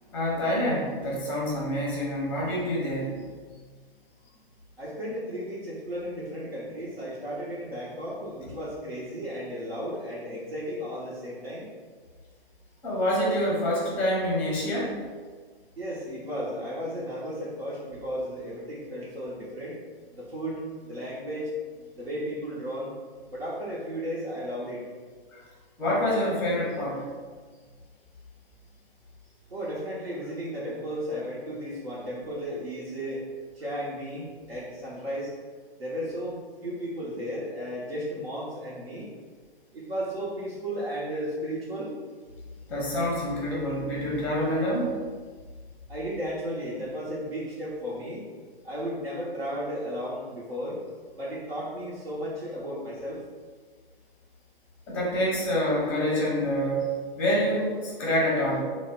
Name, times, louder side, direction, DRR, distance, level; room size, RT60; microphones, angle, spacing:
voice 1, 0.1-3.2 12.8-14.9 25.8-27.1 42.7-45.0 54.9-56.9 57.2-58.6, equal, 5° left, -4 dB, 0.6 m, -26 dB
voice 2, 4.8-11.7 15.8-19.7 20.1-21.5 21.9-22.9 23.3-24.8 29.5-33.2 33.6-35.3 35.8-39.1 39.7-41.9 45.9-48.3 48.6-50.8 51.1-53.2, equal, 80° right, -7 dB, 0.9 m, -34 dB
3.4 x 2.1 x 3.6 m, 1.5 s
figure-of-eight pair, 125°, 30 cm